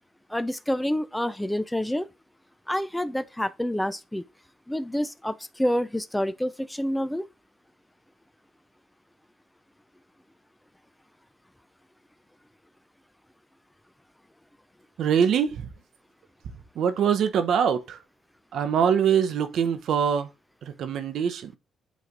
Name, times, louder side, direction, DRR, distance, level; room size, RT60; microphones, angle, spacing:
voice 1, 0.3-2.1 2.7-4.2 4.7-7.3, equal, 5° left, 0.4 m, -28 dB
voice 2, 15.0-15.6 16.8-18.0 18.5-20.3 20.6-21.6, right 7 dB, 70° right, 0.9 m, -23 dB
8.3 x 3.3 x 3.8 m
cardioid pair, 90°, 0 cm